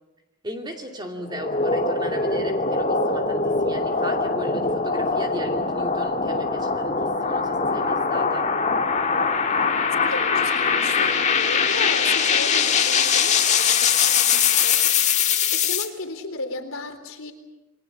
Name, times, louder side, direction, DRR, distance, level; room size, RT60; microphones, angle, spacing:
voice 1, 0.4-8.5, right 1 dB, 20° right, 3 dB, 2.6 m, -36 dB
sound 1, 1.3-15.9, left 5 dB, 30° left, 1.8 m, -22 dB
voice 2, 10.1-14.9 15.5-17.3, left 3 dB, 70° left, 5 dB, 3.7 m, -34 dB
28.5 x 22.5 x 7.1 m, 1.0 s
head